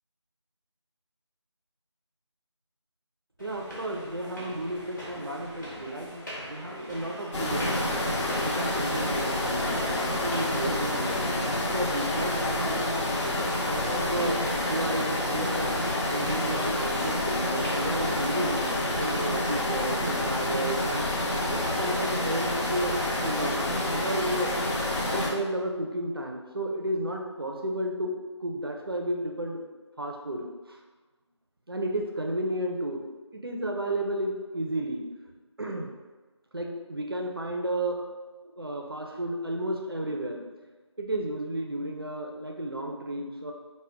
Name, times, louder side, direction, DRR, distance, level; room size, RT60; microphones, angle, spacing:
sound 1, 3.4-22.3, equal, 40° left, 0.8 m, -42 dB
voice 1, 3.4-8.0 8.3-11.3 11.7-12.9 13.6-15.8 16.1-18.6 19.0-21.1 21.5-23.6 23.9-24.5 25.1-28.1 28.4-29.6 30.0-30.8 31.7-33.0 33.3-35.0 35.6-35.9 36.5-38.0 38.4-40.4 41.0-43.5, right 1 dB, 50° right, 1 dB, 0.4 m, -32 dB
sound 2, 7.3-25.3, left 1 dB, 70° left, 0.9 m, -28 dB
2.2 x 2.1 x 3.5 m, 1.3 s
figure-of-eight pair, 170°, 15 cm